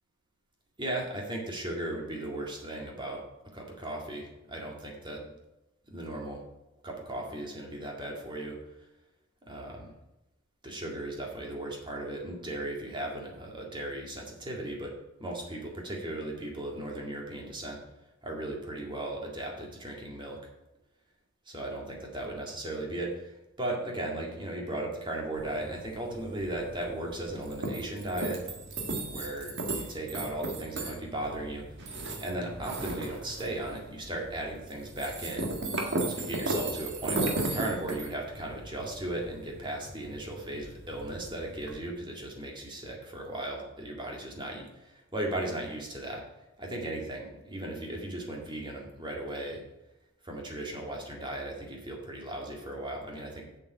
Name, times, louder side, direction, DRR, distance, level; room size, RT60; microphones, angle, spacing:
voice 1, 0.8-3.2 3.5-5.3 5.9-6.4 6.8-8.6 9.5-9.9 10.6-14.9 15.2-17.8 18.2-20.4 21.5-28.4 29.1-31.7 32.2-35.5 36.1-44.6 45.1-46.2 46.6-49.6 50.2-53.5, right 1 dB, 20° right, -1 dB, 2.0 m, -36 dB
sound 1, 25.4-41.8, right 2 dB, 55° right, 1.6 m, -36 dB
7.5 x 6.9 x 5.7 m, 0.96 s
head